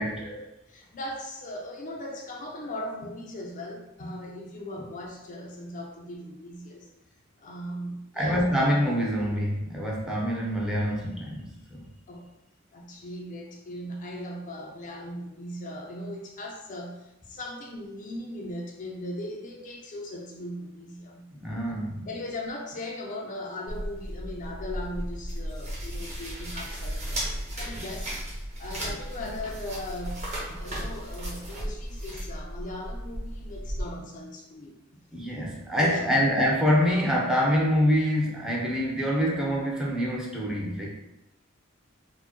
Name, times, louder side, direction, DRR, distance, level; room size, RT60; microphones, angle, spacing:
voice 1, 0.0-6.9 7.4-8.4 12.1-12.3 12.7-21.3 22.0-35.0 35.8-36.1, left 1 dB, 40° left, 0 dB, 0.4 m, -39 dB
voice 2, 8.2-11.8 21.3-22.0 35.1-40.9, equal, 5° right, -3 dB, 0.6 m, -25 dB
sound 1, 23.7-33.8, equal, 30° right, 1.0 m, -35 dB
4.3 x 2.1 x 2.9 m, 0.89 s
head